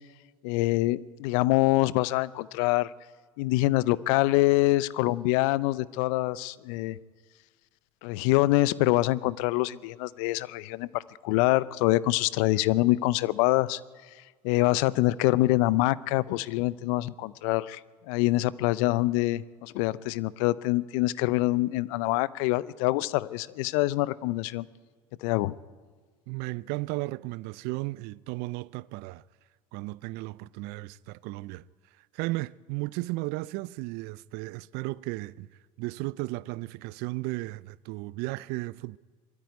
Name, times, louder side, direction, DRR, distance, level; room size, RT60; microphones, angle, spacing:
voice 1, 0.4-2.9 3.4-7.0 8.0-13.8 14.4-17.8 18.1-24.7 25.2-25.5, left 18 dB, 70° left, 0.6 m, -25 dB
voice 2, 26.3-29.2 29.7-31.6 32.1-35.5 35.8-39.0, right 21 dB, 60° right, 0.5 m, -34 dB
21.0 x 13.5 x 9.3 m
hypercardioid pair, 70°, 18 cm